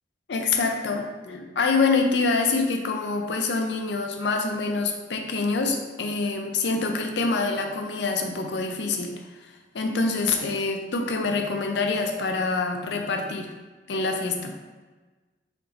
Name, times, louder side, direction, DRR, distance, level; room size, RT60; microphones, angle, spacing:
voice 1, 0.3-9.3 9.7-13.5 13.9-14.5, left 3 dB, 75° left, 4 dB, 0.5 m, -26 dB
4.0 x 2.8 x 3.4 m, 1.3 s
head